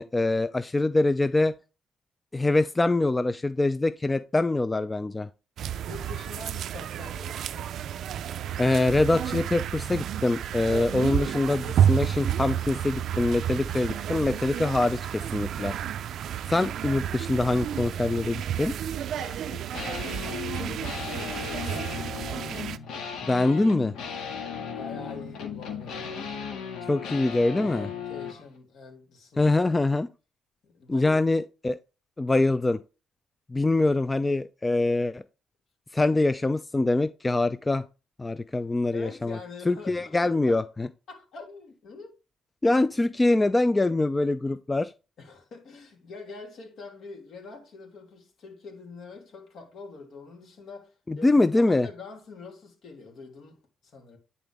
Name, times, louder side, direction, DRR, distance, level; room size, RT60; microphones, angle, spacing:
voice 1, 0.0-1.5 2.3-5.3 8.6-15.7 16.5-18.7 23.2-23.9 26.9-27.9 29.4-30.1 30.9-31.8 32.2-32.8 33.5-35.2 35.9-37.8 38.2-39.4 39.7-40.9 42.6-44.9 51.1-51.9, left 2 dB, 20° left, 0.4 m, -24 dB
sound 1, 5.6-22.8, right 10 dB, 70° right, 0.4 m, -30 dB
voice 2, 5.8-7.7 19.1-22.2 24.6-26.1 27.5-29.5 29.8-30.0 30.6-31.1 38.9-40.6 41.1-42.1 45.2-54.2, left 4 dB, 65° left, 2.9 m, -45 dB
sound 2, 19.7-28.4, left 7 dB, 80° left, 1.8 m, -36 dB
9.9 x 4.0 x 3.5 m
cardioid pair, 90°, 0 cm